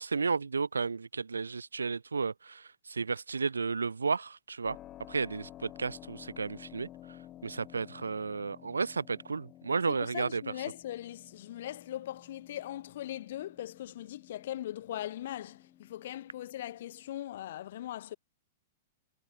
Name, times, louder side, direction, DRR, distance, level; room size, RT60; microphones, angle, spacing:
voice 1, 0.0-4.8 5.1-6.9 7.4-10.4, right 4 dB, 85° right, 0.6 m, -33 dB
Keyboard (musical), 4.6-17.2, left 13 dB, 30° left, 2.9 m, -53 dB
voice 2, 9.9-18.2, left 13 dB, 60° left, 1.3 m, -40 dB
hypercardioid pair, 105°, 0 cm